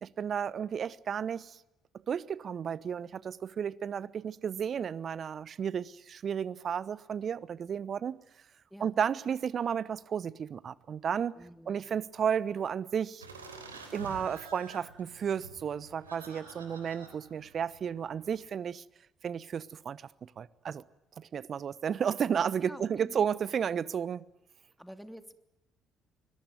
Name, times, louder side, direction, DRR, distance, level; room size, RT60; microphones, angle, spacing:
voice 1, 0.0-1.6 2.1-8.2 8.8-11.3 11.7-13.2 13.9-18.8 19.2-20.8 21.2-24.2, right 7 dB, 45° right, 1.0 m, -33 dB
voice 2, 11.3-11.9 22.6-23.2 24.8-25.3, equal, ahead, 3.1 m, -48 dB
sound 1, 13.2-18.4, right 4 dB, 85° right, 3.6 m, -49 dB
24.5 x 22.0 x 9.4 m
figure-of-eight pair, 45°, 0 cm